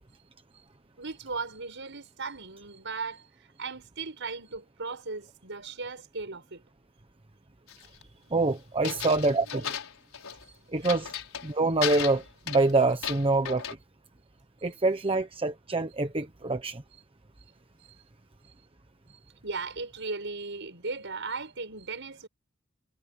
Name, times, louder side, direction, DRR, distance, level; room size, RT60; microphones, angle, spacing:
voice 1, 1.0-6.6 8.9-9.0 9.3-9.7 10.4-10.8 19.4-22.3, right 4 dB, 60° right, 6.1 m, -37 dB
sound 1, 7.7-8.0 8.8-10.4 10.8-11.5 11.8-13.7, left 8 dB, 80° left, 4.8 m, -35 dB
voice 2, 8.3-9.6 10.7-11.1 11.4-13.6 14.6-16.8, right 3 dB, 25° right, 1.1 m, -26 dB
head